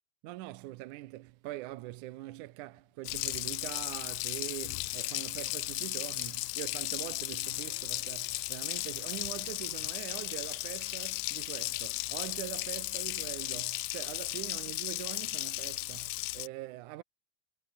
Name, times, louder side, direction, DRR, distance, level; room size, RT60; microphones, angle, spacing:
voice 1, 0.2-17.0, right 17 dB, 85° right, 2.2 m, -43 dB
sound 1, 2.1-14.7, left 2 dB, 40° left, 8.7 m, -76 dB
Water tap faucet, 3.0-16.5, left 20 dB, 90° left, 1.5 m, -35 dB
sound 2, 4.2-12.0, right 7 dB, 45° right, 2.2 m, -66 dB
omnidirectional pair, 3.6 m